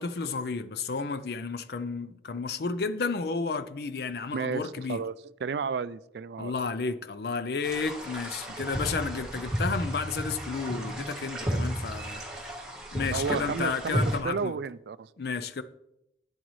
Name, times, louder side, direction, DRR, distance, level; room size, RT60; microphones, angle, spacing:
voice 1, 0.0-5.0 6.4-12.5 12.9-14.6 15.2-15.6, left 4 dB, 55° left, 0.4 m, -32 dB
voice 2, 4.3-6.5 13.1-15.1, right 5 dB, 65° right, 0.3 m, -32 dB
sound 1, 7.6-14.2, equal, 5° right, 1.7 m, -33 dB
9.6 x 8.0 x 3.1 m
head